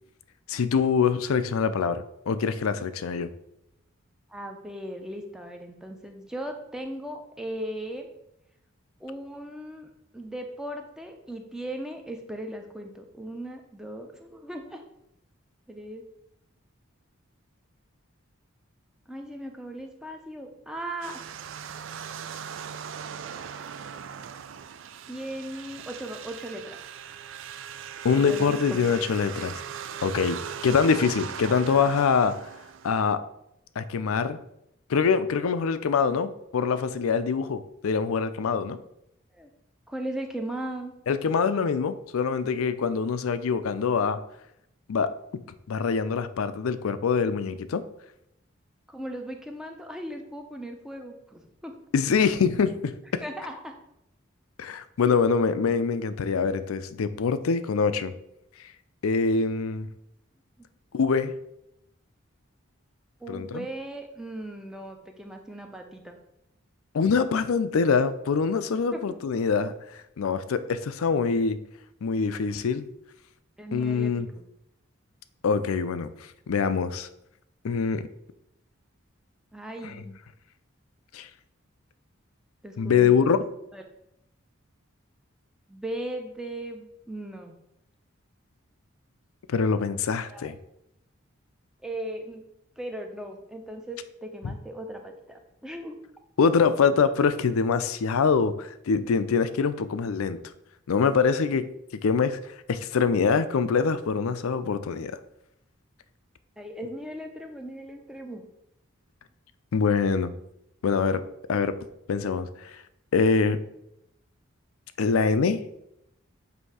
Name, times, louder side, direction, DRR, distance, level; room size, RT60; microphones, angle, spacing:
voice 1, 0.5-3.3 28.0-29.5 30.0-32.4 32.8-33.2 33.8-34.4 34.9-38.8 41.1-44.2 44.9-47.8 51.9-53.2 54.6-58.1 59.0-59.9 60.9-61.3 63.3-63.7 66.9-71.6 72.0-72.8 73.7-74.3 75.4-76.1 76.5-77.1 77.6-78.1 79.8-79.9 81.1-81.3 82.8-83.4 89.5-90.6 94.4-94.5 96.4-100.4 100.9-102.4 102.7-105.2 109.7-110.3 110.8-111.2 111.5-111.8 112.1-112.7 113.1-113.6 115.0-115.6, left 5 dB, 85° left, 13 dB, 0.4 m, -24 dB
voice 2, 4.3-8.1 9.0-14.8 15.7-16.1 19.1-21.3 25.1-26.8 28.1-28.9 39.3-39.5 39.9-40.9 48.9-51.7 53.2-53.7 63.2-66.2 68.9-69.1 73.6-74.5 79.5-80.2 82.6-83.4 83.7-83.8 85.7-87.5 90.3-90.5 91.8-92.4 92.8-96.0 106.6-108.4, right 1 dB, 5° right, 3 dB, 0.5 m, -38 dB
sound 1, 21.0-33.1, right 8 dB, 65° right, 0.4 m, -39 dB
7.8 x 2.7 x 4.7 m, 0.80 s
head